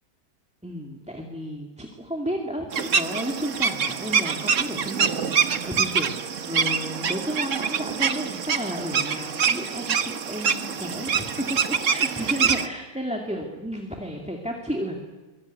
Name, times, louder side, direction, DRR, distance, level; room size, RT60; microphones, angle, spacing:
voice 1, 0.6-15.0, equal, 5° right, 2 dB, 2.4 m, -32 dB
sound 1, 2.7-12.7, right 6 dB, 50° right, 1.4 m, -25 dB
23.5 x 22.0 x 9.6 m, 1.2 s
omnidirectional pair, 1.8 m